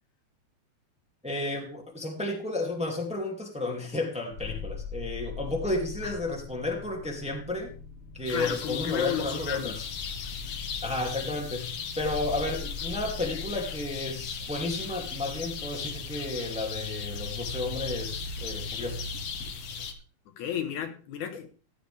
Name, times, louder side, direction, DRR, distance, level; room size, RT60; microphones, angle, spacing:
voice 1, 1.2-7.7 8.1-9.8 10.8-11.7 12.0-19.2, left 2 dB, ahead, 1 dB, 2.2 m, -32 dB
sound 1, 4.3-19.5, left 5 dB, 45° left, 2.7 m, -42 dB
voice 2, 8.3-9.8 20.4-21.5, left 9 dB, 80° left, 7 dB, 2.8 m, -33 dB
sound 2, 8.3-19.9, left 5 dB, 60° left, 2.3 m, -37 dB
15.5 x 11.5 x 3.5 m, 0.38 s
omnidirectional pair, 3.4 m